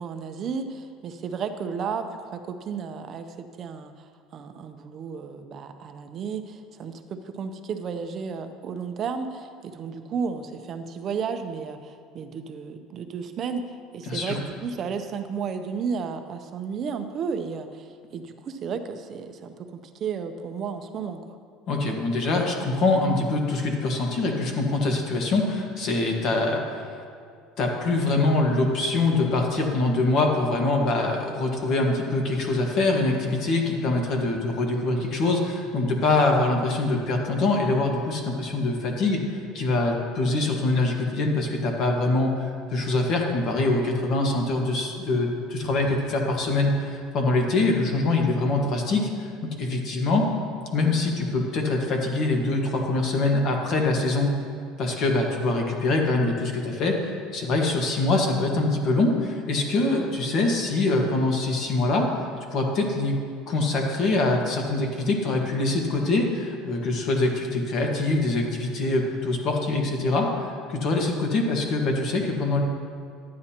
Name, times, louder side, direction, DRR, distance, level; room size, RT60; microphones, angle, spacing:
voice 1, 0.0-21.4, right 6 dB, 35° right, 7 dB, 0.6 m, -33 dB
voice 2, 14.1-14.4 21.7-26.8 27.6-39.2 39.5-49.3 49.6-50.3 50.7-54.3 54.8-57.0 57.3-62.1 62.5-63.2 63.5-72.6, left 2 dB, 45° left, 1 dB, 1.5 m, -24 dB
12.0 x 9.4 x 2.9 m, 2.3 s
cardioid pair, 145°, 0 cm